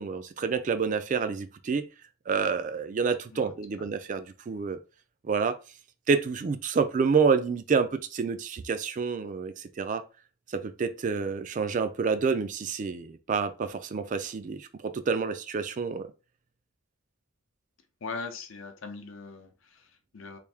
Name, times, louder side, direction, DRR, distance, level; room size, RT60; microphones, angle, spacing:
voice 1, 0.0-1.8 2.3-4.8 5.3-5.6 6.1-10.0 10.5-16.1, right 5 dB, 40° right, 0.3 m, -28 dB
voice 2, 18.0-20.4, left 4 dB, 75° left, 0.7 m, -40 dB
3.3 x 2.6 x 3.4 m
head